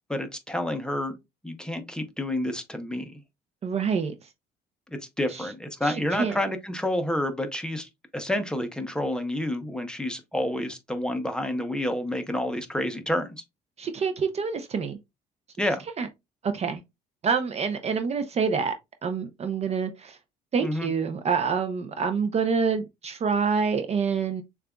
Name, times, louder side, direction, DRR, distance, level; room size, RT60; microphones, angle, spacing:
voice 1, 0.1-1.2 1.4-3.2 4.9-13.4 15.6-15.8 20.6-20.9, left 1 dB, 5° left, 0.7 m, -29 dB
voice 2, 3.6-4.2 5.3-5.5 5.8-6.4 13.8-15.0 16.0-16.1 16.4-16.8 17.2-18.7 19.0-20.2 20.5-24.4, right 5 dB, 40° right, 0.5 m, -27 dB
6.5 x 2.4 x 2.3 m
cardioid pair, 110°, 17 cm